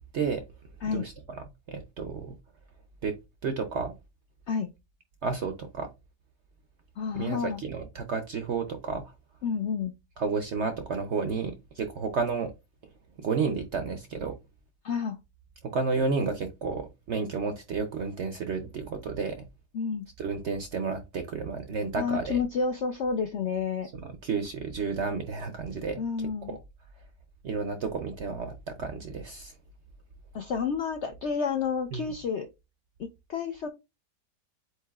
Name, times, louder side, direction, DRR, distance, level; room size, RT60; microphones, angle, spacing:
voice 1, 0.9-2.4 3.0-3.2 3.4-3.9 5.2-5.9 7.1-9.1 10.2-12.5 13.2-14.4 15.7-19.4 20.2-22.4 24.1-26.0 26.5-26.6 27.4-29.5 31.9-32.1, right 5 dB, 65° right, 0.7 m, -31 dB
voice 2, 7.0-7.6 9.4-9.9 14.8-15.2 19.7-20.1 22.0-23.9 26.0-26.6 30.3-32.5 33.0-33.7, left 6 dB, 70° left, 0.6 m, -30 dB
7.8 x 2.7 x 2.3 m
omnidirectional pair, 1.8 m